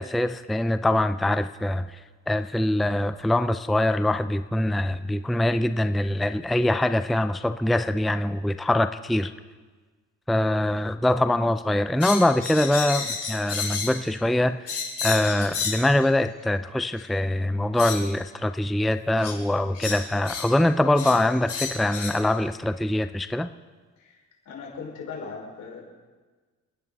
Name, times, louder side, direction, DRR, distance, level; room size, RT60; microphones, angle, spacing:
voice 1, 0.0-2.0 2.3-9.3 10.3-14.7 15.0-23.5, left 1 dB, ahead, 11 dB, 0.5 m, -23 dB
sound 1, 12.0-14.0 14.7-15.9 17.0-17.1 17.8-18.0 19.2-19.4 19.7-20.5 21.0-21.2 21.5-22.2, left 5 dB, 55° left, 4.9 m, -31 dB
voice 2, 24.5-25.8, left 5 dB, 70° left, -2 dB, 5.5 m, -38 dB
29.0 x 10.5 x 4.1 m, 1.4 s
cardioid pair, 90°, 30 cm